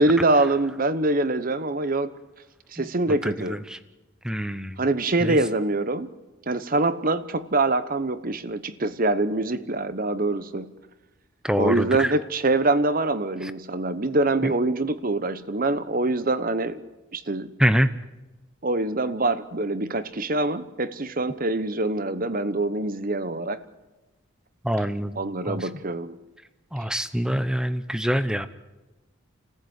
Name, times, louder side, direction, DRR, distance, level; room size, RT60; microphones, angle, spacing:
voice 1, 0.0-2.1 2.7-3.6 4.8-6.1 6.5-10.7 11.6-16.8 17.1-17.5 18.6-23.6 25.2-26.1, right 2 dB, 40° right, 13 dB, 1.0 m, -24 dB
voice 2, 3.2-3.8 4.2-4.8 5.2-5.4 11.4-12.1 13.4-13.5 14.4-14.5 17.6-17.9 24.6-25.7 26.7-28.5, equal, 5° right, 12 dB, 0.8 m, -25 dB
29.5 x 15.0 x 8.2 m, 1.1 s
head